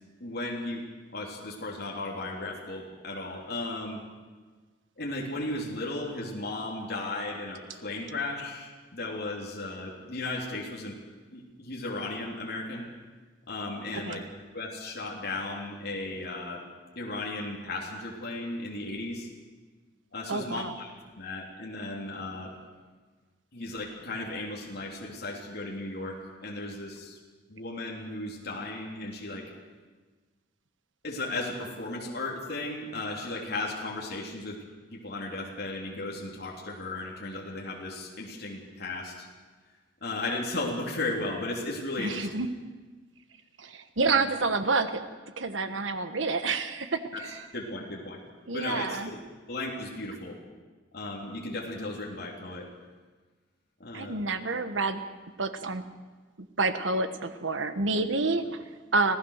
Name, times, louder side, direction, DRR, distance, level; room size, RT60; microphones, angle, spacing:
voice 1, 0.2-0.8 1.1-4.0 5.0-11.0 11.3-12.9 13.5-14.3 14.5-16.6 16.9-19.3 20.1-22.5 23.5-27.2 27.5-29.5 31.0-34.6 34.9-39.3 40.0-42.3 44.0-44.3 47.1-48.2 48.5-49.2 49.5-50.4 50.9-52.7 53.8-54.2, left 2 dB, 60° left, -2 dB, 3.3 m, -35 dB
voice 2, 20.3-20.7 42.0-42.5 43.6-47.4 48.5-49.1 53.9-55.0 55.4-55.8 56.6-59.2, right 3 dB, 85° right, 9 dB, 1.4 m, -29 dB
25.5 x 16.0 x 6.6 m, 1.4 s
head